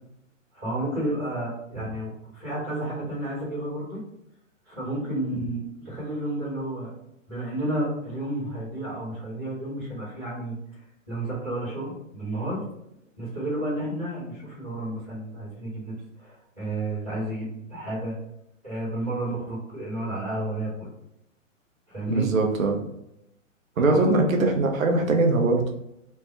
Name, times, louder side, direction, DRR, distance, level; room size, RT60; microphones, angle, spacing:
voice 1, 0.5-4.0 4.6-6.9 7.3-12.6 13.2-18.1 18.6-20.9 21.9-22.3 23.8-24.1, right 1 dB, 5° left, -23 dB, 0.3 m, -31 dB
voice 2, 22.1-22.8 23.8-25.6, right 2 dB, 90° right, 3 dB, 0.9 m, -21 dB
3.3 x 2.3 x 4.3 m, 0.81 s
hypercardioid pair, 150°, 40 cm